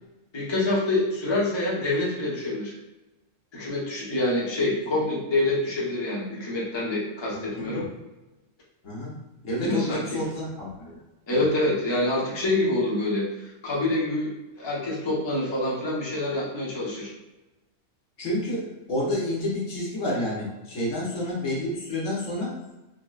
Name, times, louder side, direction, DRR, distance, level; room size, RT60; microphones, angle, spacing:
voice 1, 0.3-2.7 3.5-7.9 9.6-10.2 11.3-17.1, left 2 dB, 25° left, -6 dB, 0.7 m, -26 dB
voice 2, 7.3-7.8 8.8-9.1 9.4-11.0 11.3-11.4 18.2-22.5, left 1 dB, 80° left, -4 dB, 1.3 m, -29 dB
4.1 x 2.1 x 2.3 m, 1.0 s
omnidirectional pair, 1.3 m